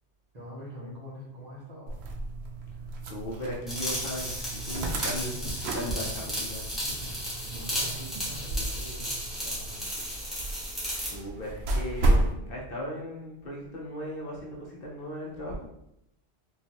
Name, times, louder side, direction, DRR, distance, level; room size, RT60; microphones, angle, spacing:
voice 1, 0.3-1.9 7.4-9.9, equal, 40° right, -6 dB, 1.2 m, -44 dB
sound 1, 1.9-12.3, right 2 dB, 70° right, 0.8 m, -32 dB
voice 2, 3.0-7.2 11.0-15.7, equal, 60° left, -2 dB, 0.9 m, -37 dB
sound 2, 3.7-11.2, equal, ahead, 1.0 m, -34 dB
3.8 x 2.4 x 2.8 m, 0.79 s
omnidirectional pair, 1.2 m